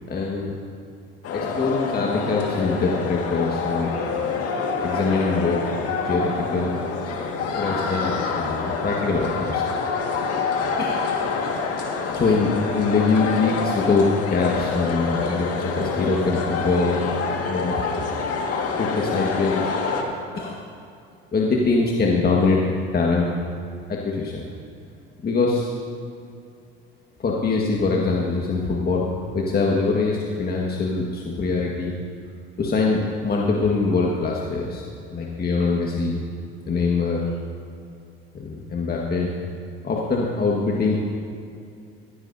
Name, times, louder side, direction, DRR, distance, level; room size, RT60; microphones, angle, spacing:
voice 1, 0.1-0.5 1.3-3.9 4.8-5.6 6.0-6.8 7.6-9.6 10.8-11.1 12.1-17.0 17.5-17.8 18.8-19.6 20.3-20.6 21.3-22.6 22.9-23.3 23.9-24.4 25.2-25.7 27.2-29.1 29.3-32.0 32.6-34.8 35.1-36.2 36.7-37.2 38.3-39.3 39.8-41.0, left 4 dB, 30° left, -2 dB, 1.7 m, -23 dB
sound 1, 1.2-20.0, left 5 dB, 55° left, 1.8 m, -26 dB
15.5 x 15.0 x 2.7 m, 2.5 s
hypercardioid pair, 70°, 29 cm